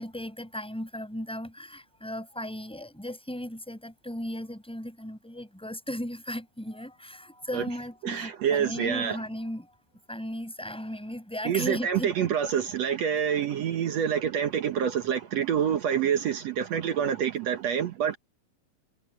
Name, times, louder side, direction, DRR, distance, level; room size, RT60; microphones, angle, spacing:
voice 1, 0.0-9.7 10.1-12.4, left 1 dB, ahead, 6.1 m, -36 dB
voice 2, 8.0-9.2 11.4-18.2, right 8 dB, 75° right, 1.5 m, -27 dB
omnidirectional pair, 4.6 m